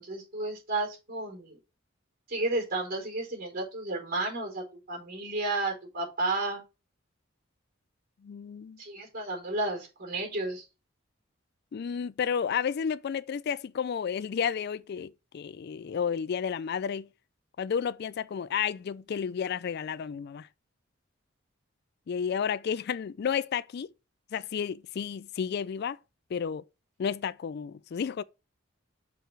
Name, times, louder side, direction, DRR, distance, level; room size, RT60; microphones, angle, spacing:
voice 1, 0.0-1.6 2.3-6.6 8.8-10.6, right 2 dB, 50° right, 4.5 m, -32 dB
voice 2, 8.2-8.8 11.7-17.1 17.6-20.5 22.1-23.9 24.3-26.0 26.3-26.6 27.0-28.2, left 7 dB, 55° left, 0.4 m, -31 dB
6.6 x 4.8 x 6.0 m
head